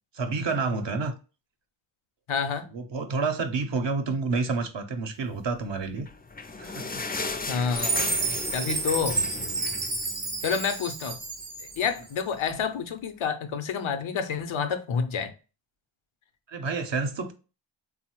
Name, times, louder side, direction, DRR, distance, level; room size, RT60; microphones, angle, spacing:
voice 1, 0.1-1.1 2.7-6.1 6.6-7.0 10.0-10.4 16.5-17.3, right 4 dB, 65° right, 0.7 m, -29 dB
voice 2, 2.3-2.7 7.5-9.2 10.4-11.2 11.6-15.3, left 6 dB, 80° left, 0.6 m, -29 dB
sound 1, 5.9-10.7 11.0-11.1 11.4-11.6 12.3-12.4, left 3 dB, 20° left, 0.4 m, -36 dB
Chime, 7.8-12.0, right 3 dB, 35° right, 0.7 m, -30 dB
3.1 x 2.0 x 2.9 m
cardioid pair, 45°, 48 cm